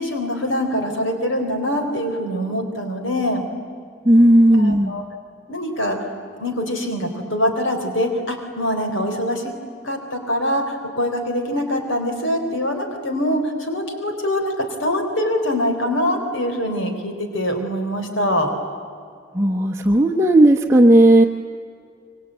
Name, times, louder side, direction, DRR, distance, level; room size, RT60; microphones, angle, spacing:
voice 1, 0.0-3.4 4.5-5.0 5.5-6.0 6.4-9.5 9.8-18.5, equal, 80° left, 5 dB, 4.0 m, -23 dB
voice 2, 4.0-5.0 19.3-21.2, right 1 dB, 15° right, -2 dB, 0.9 m, -14 dB
25.5 x 23.5 x 9.0 m, 2.2 s
head